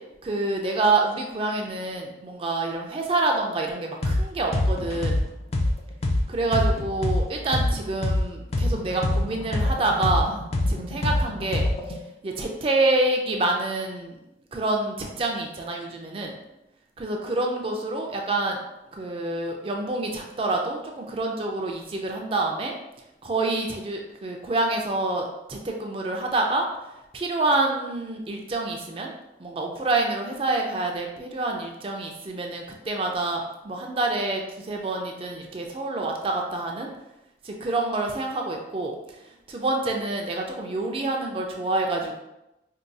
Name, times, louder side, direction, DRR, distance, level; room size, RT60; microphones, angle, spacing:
voice 1, 0.2-5.2 6.3-14.2 14.5-16.3 17.0-18.6 18.9-22.7 23.2-29.1 29.4-36.9 37.4-42.2, right 2 dB, 30° right, 1 dB, 0.4 m, -27 dB
sound 1, 4.0-4.2 4.5-8.2 8.5-12.0, left 2 dB, 35° left, 0.4 m, -24 dB
4.6 x 2.3 x 2.6 m, 0.91 s
head